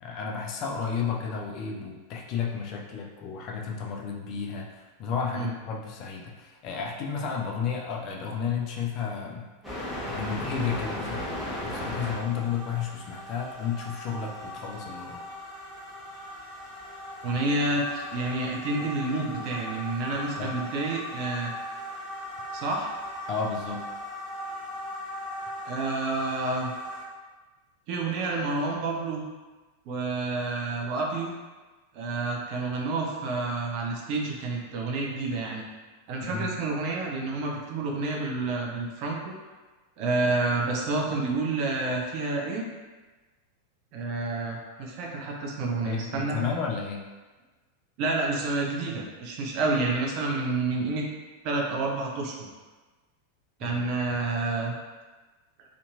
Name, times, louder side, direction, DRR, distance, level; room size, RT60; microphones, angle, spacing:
voice 1, 0.0-9.5 10.1-15.2 20.4-20.5 23.3-23.8 36.3-36.5 45.9-47.0 53.6-53.8 54.1-54.2, left 6 dB, 40° left, 0 dB, 0.4 m, -32 dB
sound 1, 9.6-27.0, left 1 dB, 10° right, 0.9 m, -38 dB
voice 2, 17.2-21.5 22.5-22.9 25.7-26.7 27.9-29.2 29.9-31.3 31.9-35.7 36.1-39.3 40.0-42.6 43.9-46.4 48.0-51.1 51.4-52.5 53.6-54.7, right 3 dB, 45° right, -1 dB, 0.5 m, -29 dB
2.7 x 2.5 x 2.3 m, 1.3 s
figure-of-eight pair, 90°, 0 cm